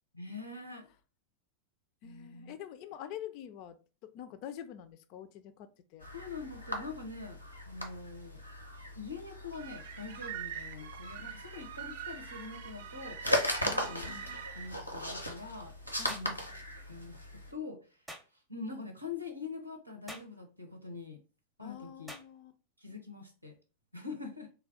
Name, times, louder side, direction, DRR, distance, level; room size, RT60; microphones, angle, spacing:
voice 1, 0.1-0.9 2.0-2.5 6.1-7.4 7.7-8.4 8.9-13.2 13.6-16.4 16.8-17.8 18.5-21.2 21.6-22.1 22.8-23.5 23.9-24.5, left 4 dB, 85° right, 4 dB, 0.7 m, -44 dB
voice 2, 2.0-3.8 4.1-5.7 5.9-6.1 13.6-14.4 16.0-16.4 21.6-22.5, left 10 dB, 45° left, 11 dB, 0.4 m, -46 dB
sound 1, 6.0-17.5, left 1 dB, 90° left, 0.7 m, -38 dB
sound 2, 9.5-14.7, right 8 dB, 55° right, 0.4 m, -44 dB
sound 3, 16.1-16.3 18.1-18.3 20.1-20.3 22.1-22.3, equal, 5° right, 0.6 m, -46 dB
3.2 x 2.3 x 3.7 m, 0.34 s
figure-of-eight pair, 90°, 0 cm